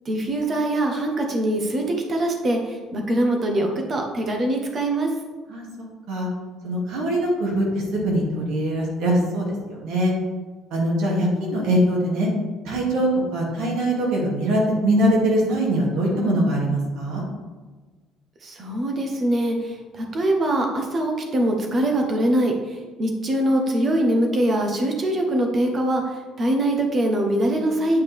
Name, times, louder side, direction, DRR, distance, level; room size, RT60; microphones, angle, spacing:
voice 1, 0.0-1.8 2.1-5.1 18.4-28.0, right 1 dB, 25° right, 2 dB, 1.0 m, -23 dB
voice 2, 6.6-10.1 10.7-12.3 12.6-17.2, right 1 dB, 70° right, -3 dB, 2.4 m, -22 dB
9.4 x 5.0 x 3.5 m, 1.3 s
cardioid pair, 180°, 0 cm